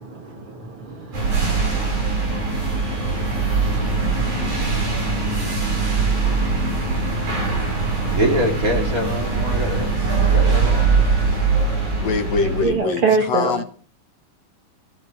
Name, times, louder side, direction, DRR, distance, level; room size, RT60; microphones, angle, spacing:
voice 1, 0.1-8.2 9.3-10.6 10.9-13.6, right 3 dB, 50° right, 2.7 m, -30 dB
sound 1, 1.1-12.7, right 4 dB, 85° right, 9.3 m, -21 dB
voice 2, 8.1-9.9 10.2-11.1, equal, 30° right, 2.8 m, -24 dB
voice 3, 12.0-13.0 13.3-13.6, left 5 dB, 65° left, 2.3 m, -23 dB
19.5 x 15.0 x 4.9 m
omnidirectional pair, 3.4 m